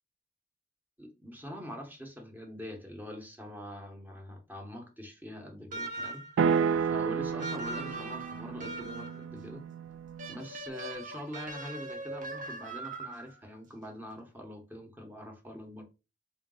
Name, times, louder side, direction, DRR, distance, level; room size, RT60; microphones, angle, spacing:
voice 1, 1.0-6.2 6.9-9.6 10.3-15.8, equal, 10° right, 0.8 m, -44 dB
sound 1, 5.7-6.4 7.4-9.2 10.2-13.4, right 2 dB, 45° right, 0.7 m, -40 dB
sound 2, 6.4-10.5, right 6 dB, 85° right, 0.3 m, -31 dB
3.9 x 2.3 x 3.7 m
head